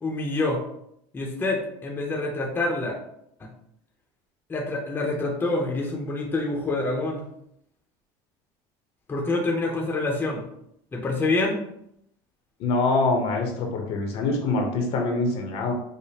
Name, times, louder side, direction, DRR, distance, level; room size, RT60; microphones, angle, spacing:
voice 1, 0.0-0.6 1.1-3.0 3.4-3.5 4.5-7.3 9.1-10.4 10.9-11.6, left 2 dB, 15° left, -1 dB, 0.7 m, -26 dB
voice 2, 12.6-15.7, left 3 dB, 55° left, 2 dB, 0.9 m, -24 dB
5.0 x 2.1 x 2.8 m, 0.74 s
supercardioid pair, 125°, 12 cm